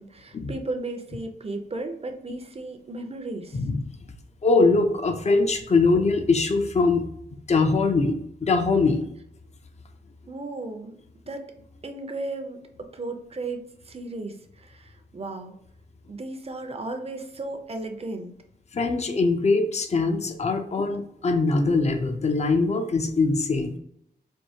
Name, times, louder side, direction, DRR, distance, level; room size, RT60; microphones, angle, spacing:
voice 1, 0.0-3.6 10.3-11.0 11.3-11.4 11.8-12.6 12.9-15.5 16.1-18.3, right 2 dB, 35° right, 5 dB, 0.6 m, -35 dB
voice 2, 4.4-8.1 8.4-9.0 18.7-23.8, left 3 dB, 40° left, 6 dB, 0.5 m, -22 dB
4.5 x 2.7 x 2.7 m, 0.73 s
wide cardioid pair, 120°, 18 cm